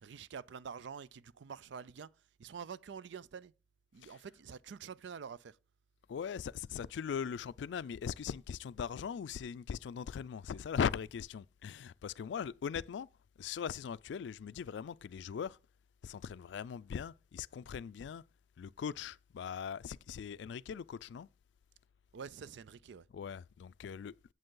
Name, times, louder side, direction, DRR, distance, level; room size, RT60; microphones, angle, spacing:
voice 1, 0.0-2.1 2.4-3.5 3.9-5.6 22.1-23.1, right 6 dB, 85° right, 0.4 m, -47 dB
voice 2, 6.1-13.1 13.4-15.6 16.0-18.2 18.6-21.3 23.1-24.1, left 7 dB, 80° left, 0.3 m, -40 dB
7.8 x 7.7 x 3.8 m
head